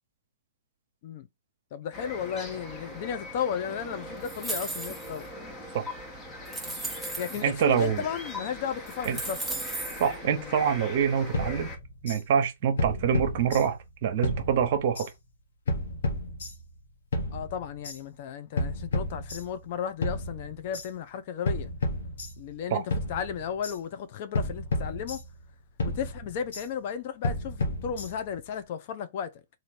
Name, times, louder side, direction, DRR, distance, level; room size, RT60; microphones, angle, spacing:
voice 1, 1.7-5.3 6.7-6.8 7.2-9.4 10.3-10.6 17.3-21.7 22.4-25.2 25.8-29.4, left 8 dB, 45° left, 0.6 m, -34 dB
sound 1, 1.9-11.8, left 1 dB, 15° left, 1.1 m, -41 dB
sound 2, 4.2-5.2 5.9-6.0 6.5-7.4 8.3-8.4 8.9-10.1, right 1 dB, ahead, 0.8 m, -35 dB
voice 2, 7.4-8.1 9.1-9.2 10.0-11.7 12.0-15.1 22.7-22.8, right 7 dB, 50° right, 0.9 m, -25 dB
sound 3, 11.3-12.2 12.8-13.9 14.2-15.1 15.7-16.8 17.1-18.0 18.6-19.7 20.0-20.9 21.5-22.6 22.9-23.8 24.3-25.5 25.8-26.7 27.2-28.4, left 2 dB, 70° left, 1.3 m, -32 dB
3.1 x 2.6 x 4.1 m
hypercardioid pair, 130°, 0 cm